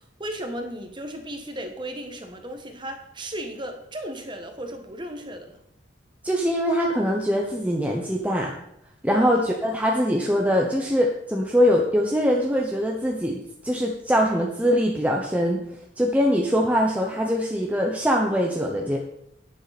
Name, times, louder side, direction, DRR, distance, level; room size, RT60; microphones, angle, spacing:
voice 1, 0.0-5.6 9.1-9.4, right 1 dB, 25° right, 5 dB, 1.5 m, -35 dB
voice 2, 6.2-8.5 9.0-15.6 16.0-19.0, equal, 5° right, -1 dB, 1.0 m, -22 dB
11.0 x 10.0 x 4.2 m, 0.78 s
head